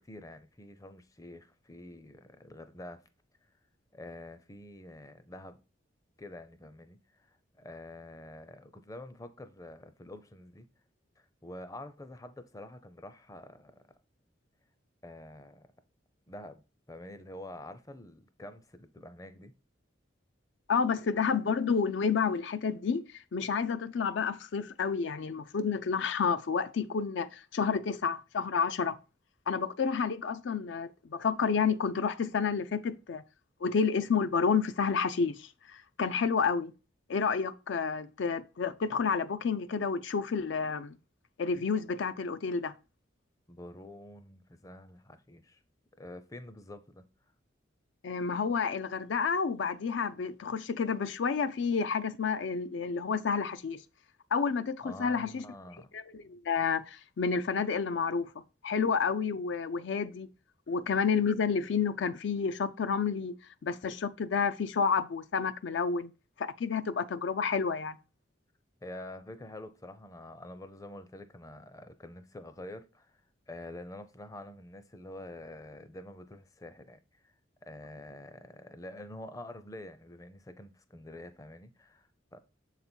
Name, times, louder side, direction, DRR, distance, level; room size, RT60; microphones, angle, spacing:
voice 1, 0.0-3.0 3.9-5.6 6.2-10.7 11.2-13.8 15.0-15.7 16.3-16.6 16.9-19.5 43.5-45.6 46.0-47.0 54.8-55.9 68.8-73.2 73.5-77.3 77.6-82.4, left 1 dB, 15° left, 0.5 m, -47 dB
voice 2, 20.7-29.0 29.5-33.2 33.6-36.7 37.1-41.0 41.4-42.7 48.0-53.8 54.3-55.5 55.9-58.3 58.6-60.3 60.7-63.3 63.6-66.1 66.4-68.0, left 5 dB, 70° left, 0.4 m, -30 dB
7.1 x 4.1 x 4.4 m
head